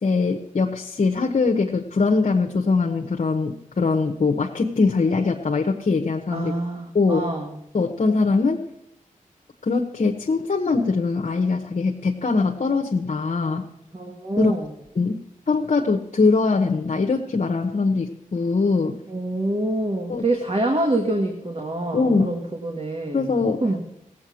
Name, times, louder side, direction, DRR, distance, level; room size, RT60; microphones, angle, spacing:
voice 1, 0.0-6.5 6.9-7.3 7.7-8.6 9.7-13.6 14.4-14.5 15.0-19.0 20.1-20.2 21.9-22.3 23.1-23.6, left 4 dB, 55° left, 2 dB, 1.0 m, -22 dB
voice 2, 6.3-7.6 13.9-14.7 19.1-23.3 23.6-23.8, right 1 dB, 40° right, 2 dB, 1.7 m, -26 dB
16.5 x 7.7 x 6.3 m, 0.79 s
cardioid pair, 55°, 14 cm